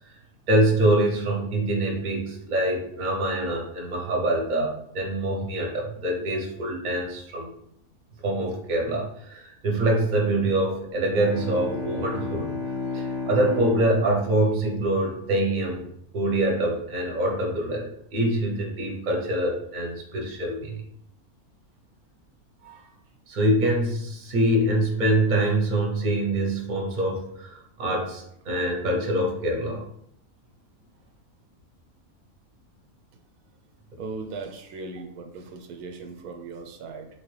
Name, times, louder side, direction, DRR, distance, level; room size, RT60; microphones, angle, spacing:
voice 1, 0.5-7.5 8.2-12.6 12.9-15.9 16.1-20.8 22.6-22.8 23.3-29.8, right 1 dB, 40° right, 0 dB, 0.8 m, -25 dB
Bowed string instrument, 11.0-15.5, left 4 dB, 10° right, 1.0 m, -33 dB
voice 2, 34.0-37.1, right 4 dB, 85° right, 5 dB, 1.1 m, -38 dB
4.0 x 2.9 x 3.2 m, 0.72 s
omnidirectional pair, 1.5 m